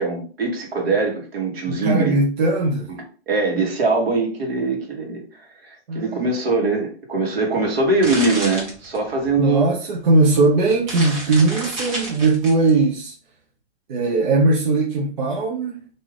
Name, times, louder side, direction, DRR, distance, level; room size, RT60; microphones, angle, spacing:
voice 1, 0.0-2.1 3.3-9.6, right 3 dB, 60° right, 1.3 m, -22 dB
voice 2, 1.7-2.9 5.9-6.2 9.3-13.1 13.9-15.9, right 3 dB, 45° right, 0.6 m, -19 dB
sound 1, 7.6-9.4 10.1-10.2 10.6-12.7, right 1 dB, 30° right, 1.1 m, -30 dB
2.6 x 2.4 x 3.2 m
hypercardioid pair, 150°, 34 cm